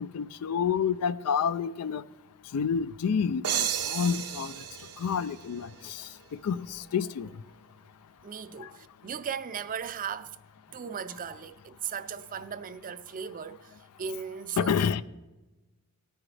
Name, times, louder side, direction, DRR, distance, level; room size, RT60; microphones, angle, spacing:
voice 1, 0.0-2.0 2.5-4.5 5.0-6.1 6.4-7.3 8.6-8.7 14.6-15.0, left 7 dB, 80° left, 0.4 m, -29 dB
sound 1, 3.4-6.1, right 10 dB, 90° right, 0.8 m, -33 dB
voice 2, 8.2-10.4 10.7-14.9, right 7 dB, 40° right, 0.4 m, -37 dB
18.0 x 9.8 x 3.3 m
head